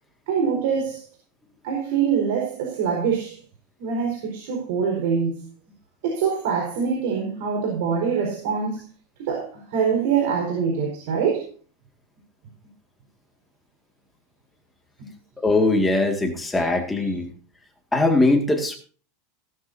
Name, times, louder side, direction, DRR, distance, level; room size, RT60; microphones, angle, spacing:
voice 1, 0.3-1.0 1.6-3.4 3.8-5.5 6.0-8.9 9.2-11.5 15.0-15.1 17.0-17.1, right 6 dB, 65° right, 4.6 m, -24 dB
voice 2, 15.4-17.3 17.9-18.8, left 2 dB, 5° left, 2.0 m, -21 dB
17.0 x 13.5 x 2.7 m
supercardioid pair, 170°, 0 cm